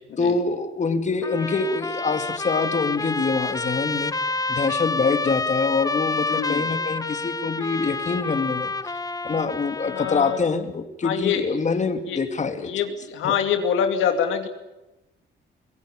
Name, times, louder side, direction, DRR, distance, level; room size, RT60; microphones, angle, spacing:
voice 1, 0.2-4.1 4.5-8.7 9.2-12.7 13.2-13.3, left 4 dB, 35° left, 8 dB, 2.5 m, -25 dB
Trumpet, 1.2-10.4, left 3 dB, 20° left, 0.8 m, -28 dB
voice 2, 6.3-6.7 9.9-10.4 11.0-11.5 12.1-12.2 12.6-14.5, left 8 dB, 85° left, 6 dB, 2.9 m, -25 dB
24.0 x 17.0 x 10.0 m, 0.99 s
cardioid pair, 90°, 20 cm